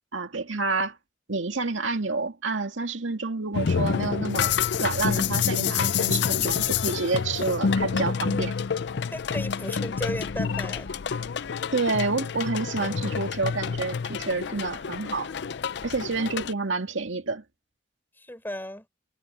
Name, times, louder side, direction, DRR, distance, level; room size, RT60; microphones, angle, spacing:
voice 1, 0.1-1.0 1.3-4.5 4.8-8.6 11.7-15.3 15.8-17.4, right 3 dB, 85° right, 2.2 m, -29 dB
sound 1, 3.5-16.5, left 6 dB, 65° left, 0.5 m, -28 dB
voice 2, 9.1-10.9 18.2-18.9, left 1 dB, 10° left, 6.5 m, -35 dB
head